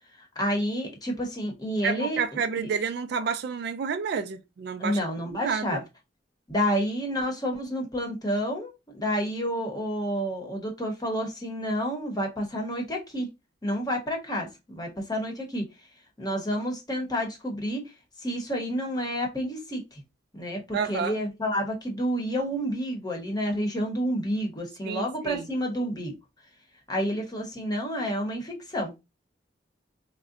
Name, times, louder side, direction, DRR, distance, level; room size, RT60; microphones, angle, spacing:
voice 1, 0.2-2.2 2.6-2.7 4.8-5.8 6.5-13.3 13.6-14.5 14.7-15.6 16.2-17.8 18.2-20.0 20.3-26.1 26.9-29.0, equal, 20° left, 0.8 m, -29 dB
voice 2, 1.8-5.0 5.3-5.8 20.7-21.2 24.8-25.4, right 6 dB, 60° right, 0.3 m, -30 dB
3.7 x 2.1 x 2.4 m
head